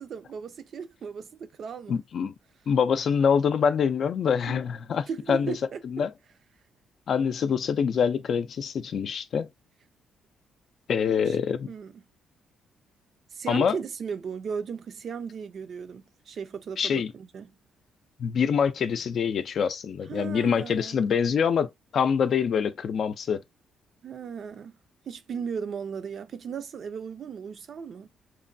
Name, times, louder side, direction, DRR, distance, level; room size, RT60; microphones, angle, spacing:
voice 1, 0.0-2.0 4.5-4.6 5.1-5.8 11.0-11.4 11.7-12.0 13.3-17.6 20.1-21.0 24.0-24.8 25.1-28.1, right 6 dB, 55° right, 0.5 m, -36 dB
voice 2, 1.9-2.3 2.7-5.5 5.8-6.1 7.1-9.5 10.9-11.7 13.5-13.8 16.8-17.1 18.2-23.4, left 7 dB, 60° left, 0.4 m, -25 dB
3.0 x 2.2 x 2.6 m
cardioid pair, 90°, 0 cm